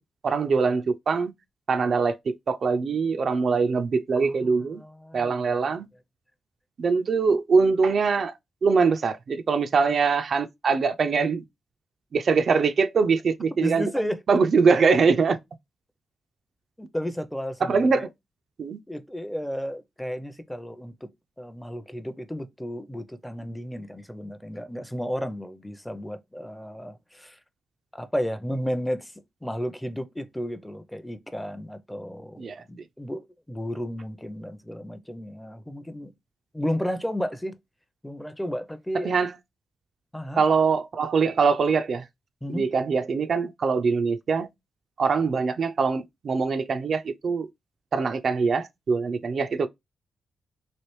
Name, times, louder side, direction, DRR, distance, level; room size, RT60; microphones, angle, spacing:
voice 1, 0.2-1.3 1.7-4.8 5.1-5.9 6.8-8.3 8.6-11.4 12.1-15.4 17.6-18.1 18.6-18.8 32.4-32.6 38.9-39.3 40.3-42.1 42.5-44.5 45.0-47.5 47.9-49.7, right 5 dB, 60° right, 0.3 m, -23 dB
voice 2, 4.2-5.7 13.6-14.2 16.8-18.0 18.9-21.1 21.4-27.4 27.9-29.1 29.4-36.1 36.5-37.5 38.0-39.1 40.1-40.4 42.4-42.6, equal, 5° left, 0.5 m, -33 dB
3.1 x 2.5 x 3.0 m
cardioid pair, 65°, 0 cm